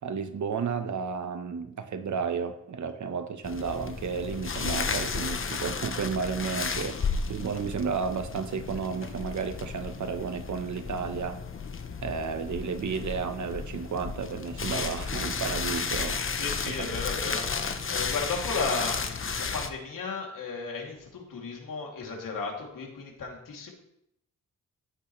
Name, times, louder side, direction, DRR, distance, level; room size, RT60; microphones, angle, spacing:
voice 1, 0.0-11.4 12.0-16.2 16.7-16.9, right 6 dB, 60° right, 8 dB, 1.1 m, -32 dB
sound 1, 3.4-19.7, left 5 dB, 40° left, 1.0 m, -33 dB
voice 2, 16.3-23.7, left 4 dB, 85° left, -1 dB, 2.9 m, -35 dB
15.5 x 8.5 x 3.2 m, 0.79 s
wide cardioid pair, 115°, 32 cm